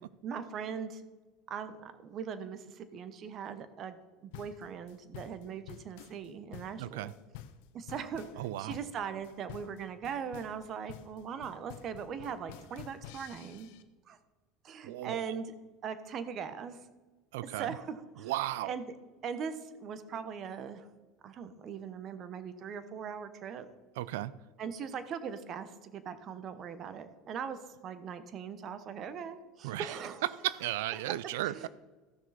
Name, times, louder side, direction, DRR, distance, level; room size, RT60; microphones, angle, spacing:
voice 1, 0.2-1.0 1.5-7.1 7.7-13.7 14.1-14.2 14.6-15.5 15.8-16.8 17.4-18.3 18.6-18.9 19.2-20.9 21.2-23.7 24.6-30.2 30.9-31.7, right 7 dB, 45° right, 12 dB, 1.0 m, -40 dB
sound 1, 4.3-13.8, left 11 dB, 80° left, 0.7 m, -50 dB
voice 2, 6.8-7.1 8.4-8.8 14.8-15.4 17.3-17.8 18.2-18.7 24.0-24.3 29.6-29.9 30.4-31.7, right 15 dB, 85° right, 19 dB, 0.4 m, -35 dB
15.0 x 6.3 x 4.2 m, 1.3 s
supercardioid pair, 115°, 0 cm